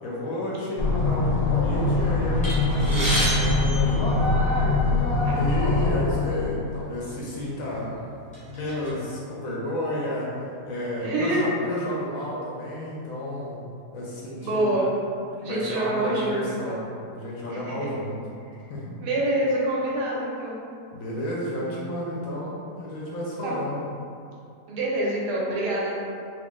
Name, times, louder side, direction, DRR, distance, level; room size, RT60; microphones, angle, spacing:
voice 1, 0.0-4.3 5.3-7.9 8.5-10.4 10.6-13.6 13.9-14.8 15.4-16.9 17.1-18.2 18.7-18.9 20.9-23.8, left 1 dB, 65° left, -5 dB, 0.9 m, -31 dB
sound 1, 0.8-6.6, left 2 dB, 85° left, 0.5 m, -23 dB
sound 2, 2.4-4.8 5.6-5.7 6.0-6.2 7.1-7.2 7.7-8.9, equal, 5° left, 0.6 m, -30 dB
voice 2, 11.0-11.5 14.4-14.9 15.4-16.8 17.5-17.7 19.0-20.6 23.4-23.6 24.7-26.0, right 1 dB, 80° right, -5 dB, 1.3 m, -26 dB
2.9 x 2.5 x 3.6 m, 2.5 s
omnidirectional pair, 1.8 m